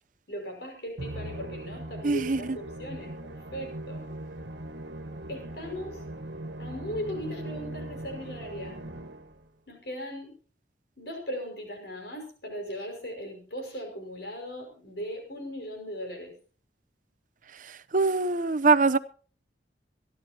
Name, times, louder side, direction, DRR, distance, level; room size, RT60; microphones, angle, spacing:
voice 1, 0.3-4.1 5.3-6.0 6.6-8.8 9.7-10.4 11.0-16.3, equal, 60° left, 5.7 m, -38 dB
Musical instrument, 1.0-9.5, right 1 dB, 75° right, 1.6 m, -40 dB
voice 2, 2.0-2.6 17.9-19.0, right 4 dB, 45° right, 0.7 m, -23 dB
25.5 x 11.5 x 2.9 m
head